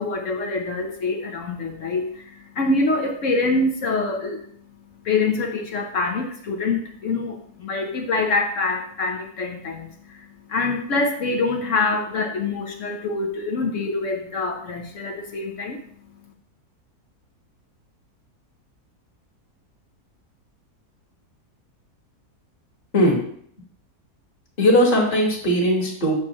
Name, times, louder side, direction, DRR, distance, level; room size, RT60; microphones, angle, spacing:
voice 1, 0.0-16.3, left 3 dB, 60° left, 3 dB, 1.0 m, -25 dB
voice 2, 24.6-26.1, equal, 35° left, -2 dB, 1.6 m, -18 dB
7.6 x 6.0 x 2.9 m, 0.64 s
omnidirectional pair, 1.7 m